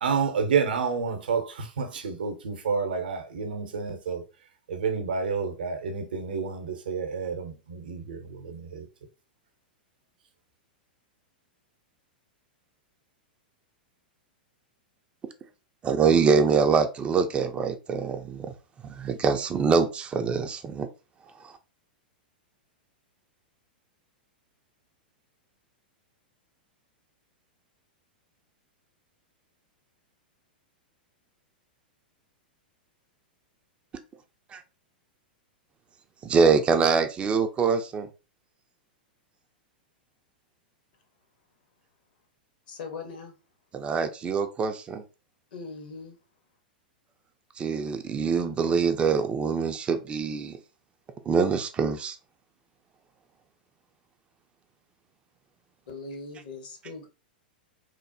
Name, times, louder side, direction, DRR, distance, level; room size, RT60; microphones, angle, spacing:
voice 1, 0.0-4.2 4.7-8.9, right 5 dB, 70° right, 0.6 m, -29 dB
voice 2, 15.8-18.5 18.9-20.9 21.4-21.5 34.5-34.6 36.2-38.1 43.7-45.0 47.6-50.6 51.3-52.2, right 5 dB, 20° right, 0.3 m, -24 dB
voice 3, 42.7-43.3 45.5-46.2 55.9-57.1, left 4 dB, 60° left, 0.8 m, -40 dB
3.1 x 2.0 x 2.6 m
figure-of-eight pair, 100°, 5 cm